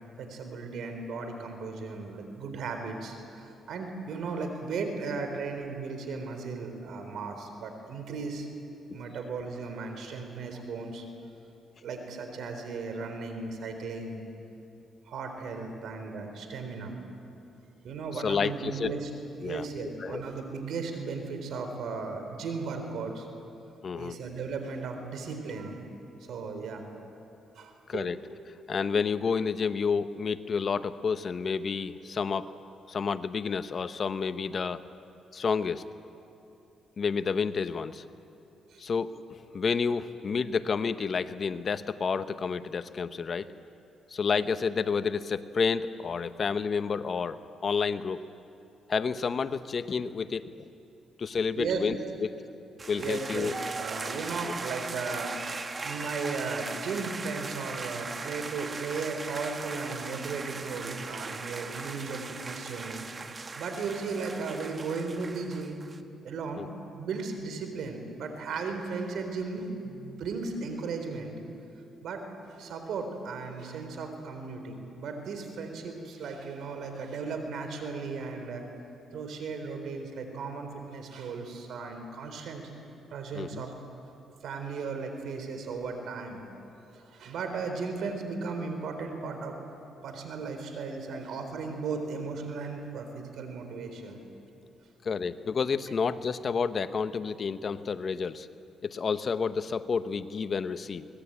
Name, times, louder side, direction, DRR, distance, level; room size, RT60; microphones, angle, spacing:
voice 1, 0.2-8.5 8.9-11.0 11.8-14.2 15.1-17.0 17.8-19.1 19.4-23.3 23.9-25.8 26.3-26.8 27.6-28.1 38.7-38.8 51.5-51.8 52.9-53.5 53.8-55.4 55.8-65.8 66.2-71.3 72.0-72.2 72.5-78.6 79.1-82.7 83.1-83.7 84.4-86.4 86.9-89.6 90.0-94.2, right 4 dB, 70° right, 6 dB, 3.9 m, -36 dB
voice 2, 18.2-18.9 19.4-19.7 20.0-20.2 23.8-24.2 27.9-28.2 28.7-32.5 32.9-34.8 35.3-35.8 37.0-38.0 38.8-43.5 44.1-48.2 48.9-50.7 51.2-52.3 52.9-53.5 54.4-54.5 66.6-66.7 83.3-83.6 95.0-98.5 98.8-101.1, left 5 dB, 45° left, 12 dB, 0.9 m, -30 dB
sound 1, 52.8-66.0, right 4 dB, 30° right, 1.3 m, -39 dB
23.5 x 19.0 x 8.9 m, 2.7 s
cardioid pair, 90°, 0 cm